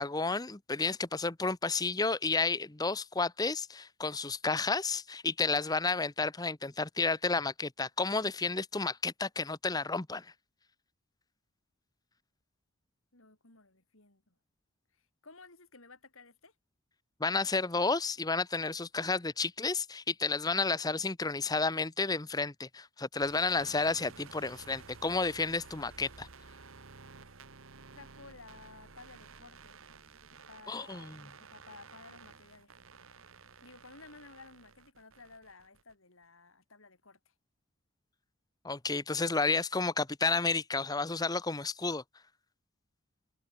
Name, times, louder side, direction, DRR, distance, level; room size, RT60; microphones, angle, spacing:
voice 1, 0.0-10.3 17.2-26.3 30.7-31.2 38.6-42.0, left 3 dB, 15° left, 0.7 m, -31 dB
voice 2, 13.1-14.4 14.9-16.5 28.0-29.8 30.3-32.7 33.6-37.3, left 3 dB, 65° left, 4.2 m, -55 dB
sound 1, 23.1-35.9, right 4 dB, 65° right, 1.4 m, -53 dB
open air
head